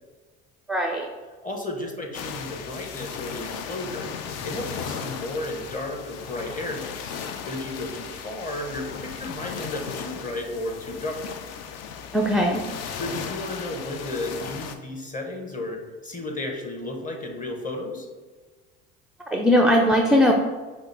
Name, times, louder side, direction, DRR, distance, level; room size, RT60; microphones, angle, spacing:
voice 1, 0.7-1.1 12.1-12.7 19.3-20.3, equal, ahead, 2 dB, 0.4 m, -19 dB
voice 2, 1.4-4.1 4.4-7.1 7.5-11.2 12.9-18.1, left 2 dB, 25° left, 2 dB, 1.0 m, -33 dB
sound 1, 2.1-14.7, left 6 dB, 55° left, 0.5 m, -36 dB
5.0 x 2.5 x 4.0 m, 1.3 s
hypercardioid pair, 60°, 31 cm